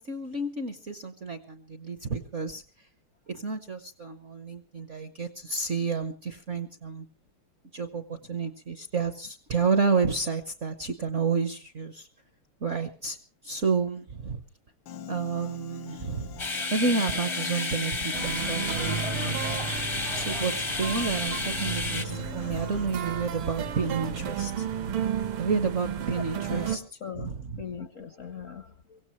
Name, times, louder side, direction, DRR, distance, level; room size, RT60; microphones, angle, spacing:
voice 1, 0.0-2.6 3.3-7.1 7.7-12.1 12.6-13.2 13.4-14.4 15.1-16.4 16.7-19.5 20.1-24.7 25.4-26.8 27.2-27.6, right 4 dB, 50° right, 9 dB, 0.9 m, -30 dB
Piano, 14.9-22.9, left 8 dB, 80° left, 1.8 m, -42 dB
sound 1, 16.4-22.0, left 3 dB, 30° left, 0.5 m, -31 dB
sound 2, 18.1-26.8, right 8 dB, 75° right, 1.9 m, -33 dB
voice 2, 27.0-29.0, left 7 dB, 55° left, 10 dB, 0.9 m, -40 dB
23.5 x 16.5 x 3.1 m, 0.35 s
omnidirectional pair, 2.4 m